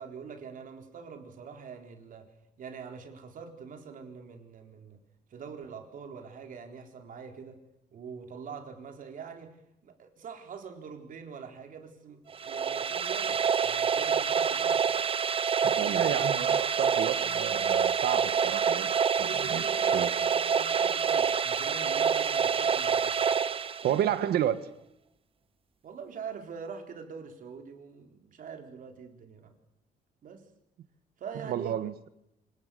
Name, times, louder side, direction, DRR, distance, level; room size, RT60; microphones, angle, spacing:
voice 1, 0.0-2.3 2.6-5.0 5.3-7.6 7.9-9.6 9.8-14.8 15.8-16.3 19.2-23.1 23.8-24.3 25.8-29.5 30.2-30.4 31.2-31.8, right 6 dB, 60° right, 5 dB, 3.9 m, -44 dB
sound 1, 12.3-24.3, right 7 dB, 35° right, 1.0 m, -27 dB
voice 2, 15.6-18.9 19.2-19.6 19.9-20.1 23.8-24.6 31.5-31.9, right 11 dB, 80° right, 13 dB, 1.6 m, -30 dB
26.5 x 19.0 x 7.0 m, 0.83 s
cardioid pair, 120°, 16 cm